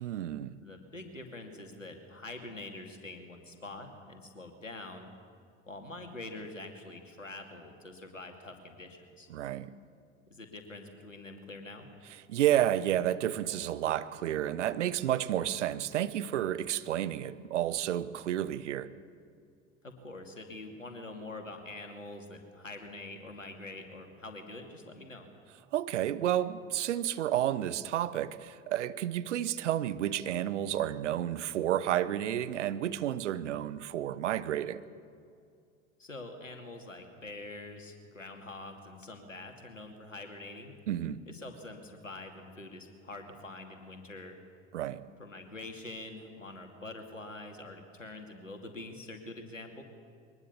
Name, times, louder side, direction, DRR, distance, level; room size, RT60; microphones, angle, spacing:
voice 1, 0.0-0.6 9.3-9.7 12.3-18.9 25.7-34.8 40.9-41.2 44.7-45.0, right 11 dB, 70° right, 15 dB, 1.0 m, -31 dB
voice 2, 0.6-5.1 5.7-9.3 10.3-11.9 19.8-25.3 36.0-40.7 41.3-44.4 45.2-49.8, left 2 dB, 90° left, 4 dB, 2.5 m, -45 dB
22.5 x 20.5 x 7.1 m, 2.3 s
figure-of-eight pair, 70°, 37 cm